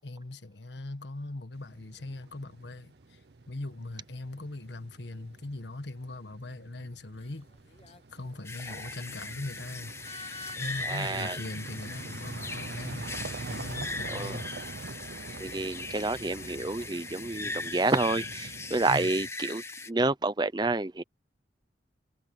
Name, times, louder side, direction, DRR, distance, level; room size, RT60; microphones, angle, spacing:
voice 1, 0.0-7.5 7.9-9.9 10.5-13.1 13.5-14.4 18.9-19.1, left 2 dB, 75° left, 1.5 m, -40 dB
sound 1, 1.5-19.3, right 3 dB, 65° right, 0.7 m, -45 dB
sound 2, 7.2-8.2 9.1-9.3 10.0-11.3, left 4 dB, 30° left, 1.6 m, -46 dB
sound 3, 8.4-19.9, left 3 dB, 15° left, 0.9 m, -39 dB
voice 2, 10.8-11.4 14.1-14.4 15.4-21.0, right 2 dB, 25° right, 0.6 m, -29 dB
head